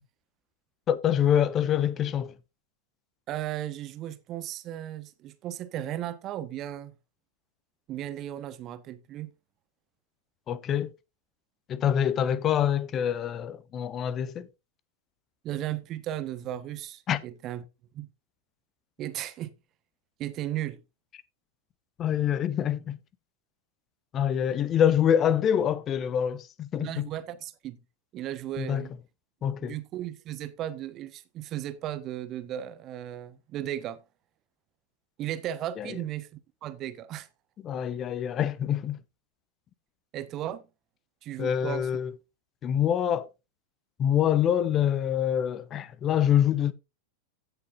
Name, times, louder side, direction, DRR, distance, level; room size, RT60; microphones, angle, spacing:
voice 1, 0.9-2.3 10.5-10.9 11.7-14.5 17.1-17.2 22.0-23.0 24.1-27.1 28.6-28.9 29.4-29.7 35.8-36.0 37.6-39.0 41.4-42.1 42.6-43.3 44.0-46.7, left 9 dB, 30° left, 0.9 m, -25 dB
voice 2, 3.3-7.0 7.9-9.3 15.4-17.6 17.9-18.1 19.0-19.5 20.2-20.8 26.7-27.8 28.1-28.9 29.6-34.0 35.2-37.3 40.1-40.6 41.2-41.9, right 12 dB, 35° right, 1.2 m, -35 dB
16.0 x 6.6 x 2.6 m
figure-of-eight pair, 90°, 0 cm